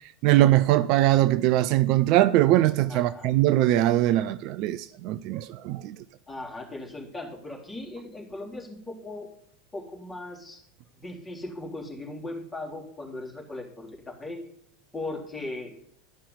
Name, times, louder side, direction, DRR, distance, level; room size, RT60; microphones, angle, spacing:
voice 1, 0.2-6.0, right 15 dB, 45° right, 0.4 m, -21 dB
voice 2, 2.9-3.3 6.3-9.3 9.7-10.6 10.9-14.4 14.9-15.7, left 2 dB, 10° left, 3.4 m, -38 dB
12.5 x 5.6 x 8.3 m
figure-of-eight pair, 80°, 0 cm